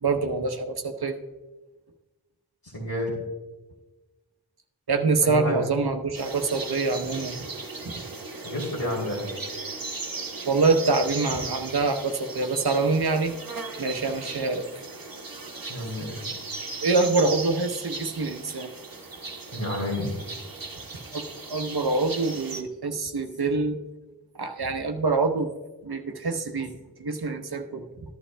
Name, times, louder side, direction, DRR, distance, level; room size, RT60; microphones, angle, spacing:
voice 1, 0.0-1.2 4.9-7.4 7.8-8.0 10.4-13.3 13.8-14.7 16.8-18.7 20.9-23.8 24.3-25.5 25.8-26.7 27.0-27.9, right 3 dB, 85° right, 5 dB, 0.9 m, -25 dB
voice 2, 2.6-3.1 5.2-5.7 8.4-9.3 15.7-16.3 19.5-20.1, left 1 dB, 65° left, -6 dB, 2.8 m, -30 dB
sound 1, 6.1-22.6, right 3 dB, 65° right, 1.1 m, -37 dB
13.5 x 11.0 x 2.2 m, 1.1 s
wide cardioid pair, 45°, 37 cm